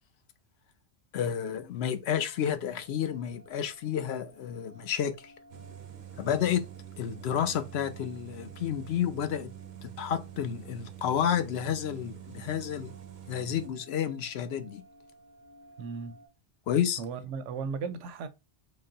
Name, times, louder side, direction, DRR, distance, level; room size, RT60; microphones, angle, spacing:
voice 1, 1.1-5.3 6.2-6.7 7.0-9.5 9.8-13.0 13.3-14.8 16.7-17.0, left 9 dB, 70° left, 0.8 m, -30 dB
sound 1, 2.1-16.3, equal, 50° left, 1.3 m, -57 dB
sound 2, 5.5-13.7, right 10 dB, 50° right, 0.6 m, -46 dB
voice 2, 15.8-16.2 17.0-18.3, right 5 dB, 90° right, 0.9 m, -36 dB
3.9 x 2.1 x 3.7 m
omnidirectional pair, 1.2 m